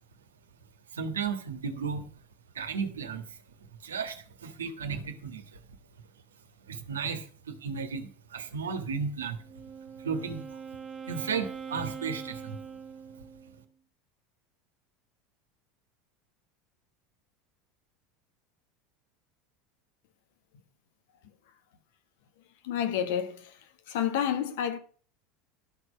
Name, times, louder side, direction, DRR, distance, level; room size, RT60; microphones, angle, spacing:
voice 1, 0.9-2.1 2.5-3.4 3.8-5.6 6.7-9.4 10.0-10.6 11.1-12.6, right 5 dB, 80° right, 1.5 m, -34 dB
Wind instrument woodwind instrument, 9.3-13.6, right 6 dB, 25° right, 0.9 m, -43 dB
voice 2, 22.6-23.5 23.9-24.8, left 9 dB, 65° left, 1.4 m, -29 dB
12.5 x 6.3 x 5.0 m
figure-of-eight pair, 75°, 0 cm